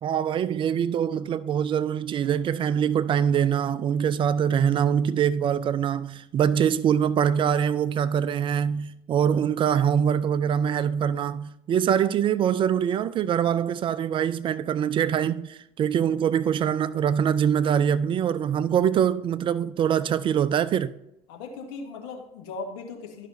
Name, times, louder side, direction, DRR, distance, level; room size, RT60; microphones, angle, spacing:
voice 1, 0.0-20.9, right 8 dB, 35° right, 0.4 m, -24 dB
voice 2, 21.3-23.3, left 4 dB, 65° left, 1.4 m, -38 dB
12.0 x 5.7 x 2.6 m
hypercardioid pair, 70°, 15 cm